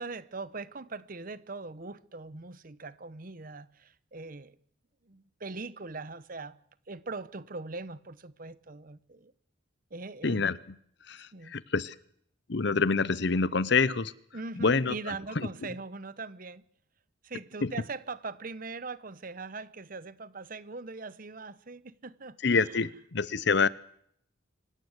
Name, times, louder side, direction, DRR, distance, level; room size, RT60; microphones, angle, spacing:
voice 1, 0.0-4.6 5.0-6.6 6.9-9.3 9.9-10.5 11.3-11.5 14.3-16.6 17.2-22.9, right 3 dB, 45° right, 0.9 m, -41 dB
voice 2, 10.2-10.6 11.1-11.9 12.5-14.1 14.6-15.5 17.6-17.7 22.4-23.7, left 4 dB, 60° left, 0.8 m, -27 dB
25.5 x 16.0 x 8.1 m
head